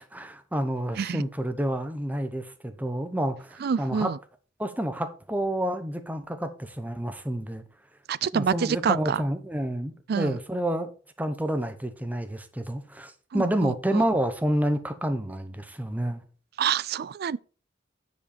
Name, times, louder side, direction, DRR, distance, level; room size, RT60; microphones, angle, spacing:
voice 1, 0.0-4.1 4.6-7.6 8.3-10.9 11.2-16.2, right 1 dB, 10° right, 0.9 m, -29 dB
voice 2, 3.6-4.2 8.1-9.2 10.1-10.4 13.3-14.0 16.6-17.4, right 7 dB, 55° right, 0.4 m, -27 dB
9.8 x 5.2 x 4.3 m
head